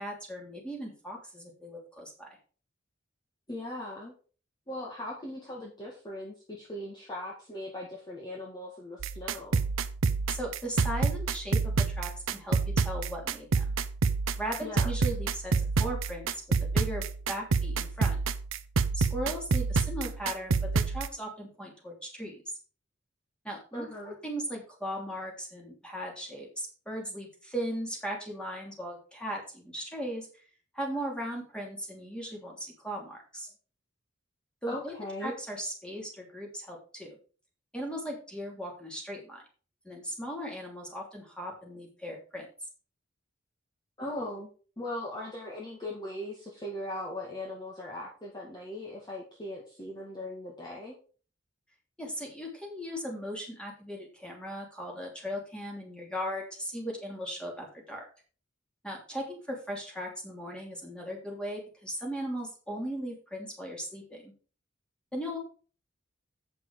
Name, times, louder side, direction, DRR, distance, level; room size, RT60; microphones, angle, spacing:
voice 1, 0.0-2.4 10.3-13.7 14.4-15.5 15.8-16.3 16.6-18.2 18.9-22.4 23.4-30.3 30.7-33.5 34.6-34.9 35.2-37.2 37.7-39.4 39.8-42.5 52.0-58.1 58.8-64.3 65.1-65.4, equal, 5° left, -1 dB, 3.1 m, -38 dB
voice 2, 3.5-4.1 4.7-9.6 14.6-14.9 23.7-24.2 34.6-35.3 44.0-44.5 44.8-51.0, left 1 dB, 20° left, -3 dB, 1.9 m, -39 dB
sound 1, 9.0-21.1, right 4 dB, 90° right, 0.7 m, -28 dB
8.5 x 6.7 x 4.8 m, 0.38 s
head